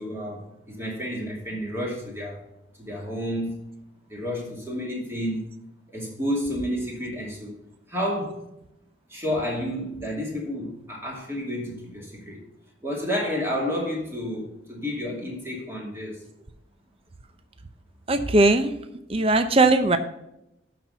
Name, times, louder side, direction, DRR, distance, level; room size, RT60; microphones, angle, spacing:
voice 1, 0.0-2.4 2.8-3.5 4.1-5.5 5.9-7.6 7.9-8.4 9.1-12.4 12.8-16.2, equal, 15° right, -2 dB, 2.5 m, -30 dB
voice 2, 18.1-18.7 19.1-20.0, right 2 dB, 30° right, 9 dB, 0.6 m, -19 dB
11.5 x 4.3 x 5.8 m, 0.84 s
head